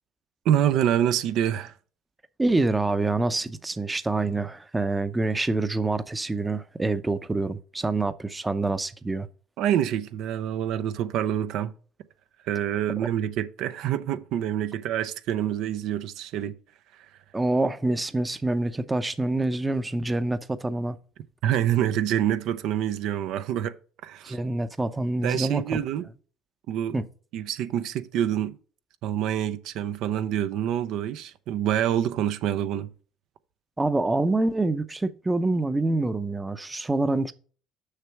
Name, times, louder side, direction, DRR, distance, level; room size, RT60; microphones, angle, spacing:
voice 1, 0.4-1.7 9.6-11.7 12.4-16.5 16.9-17.1 21.4-23.7 24.0-24.4 25.2-26.1 26.7-27.0 27.3-28.6 29.0-32.9, right 10 dB, 70° right, 0.6 m, -26 dB
voice 2, 2.4-9.3 17.3-21.0 24.2-25.8 26.9-27.1 33.8-37.3, right 2 dB, 15° right, 0.7 m, -26 dB
6.6 x 6.0 x 4.5 m
supercardioid pair, 85°, 0 cm